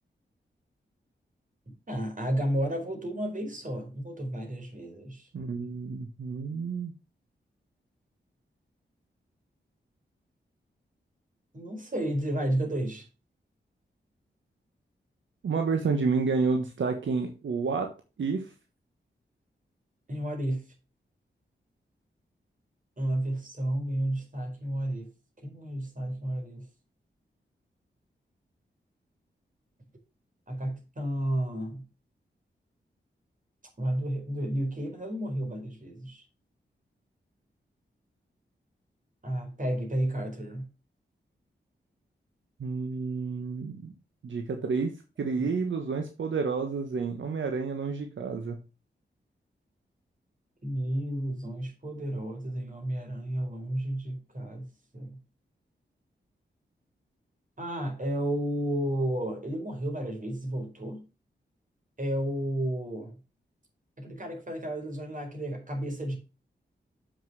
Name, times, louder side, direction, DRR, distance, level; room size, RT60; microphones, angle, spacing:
voice 1, 1.9-5.3 11.5-13.1 20.1-20.6 23.0-25.1 25.4-26.6 30.5-31.8 33.8-36.2 39.2-40.7 45.4-45.5 50.6-54.7 54.9-55.2 57.6-61.0 62.0-63.2 64.0-66.2, right 1 dB, 45° right, 4.4 m, -32 dB
voice 2, 5.3-6.9 15.4-17.9 18.2-18.5 42.6-43.9 44.2-44.9 45.2-48.6, right 4 dB, 80° right, 1.3 m, -30 dB
7.4 x 6.5 x 6.0 m
cardioid pair, 50°, 19 cm